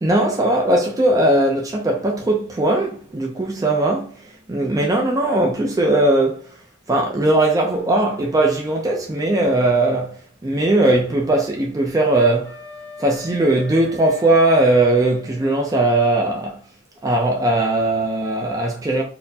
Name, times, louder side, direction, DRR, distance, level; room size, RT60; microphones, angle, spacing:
voice 1, 0.0-6.6 6.9-12.6 13.0-16.6 17.0-19.0, right 2 dB, 15° right, 0.4 m, -19 dB
Wind instrument woodwind instrument, 12.4-15.6, left 2 dB, 15° left, 0.8 m, -41 dB
4.2 x 2.1 x 2.7 m
head